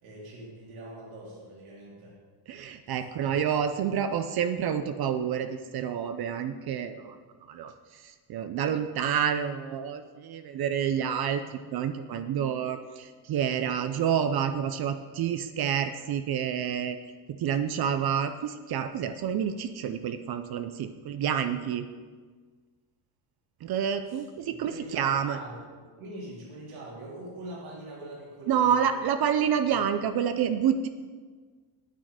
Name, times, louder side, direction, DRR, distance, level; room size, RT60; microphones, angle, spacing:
voice 1, 0.0-2.2 2.9-3.8 24.0-29.0 29.7-29.8, right 1 dB, 80° right, -5 dB, 3.7 m, -44 dB
voice 2, 2.5-17.0 17.3-21.9 23.6-25.4 28.5-30.9, right 8 dB, 50° right, 9 dB, 0.6 m, -28 dB
9.1 x 8.9 x 5.0 m, 1.5 s
cardioid pair, 145°, 48 cm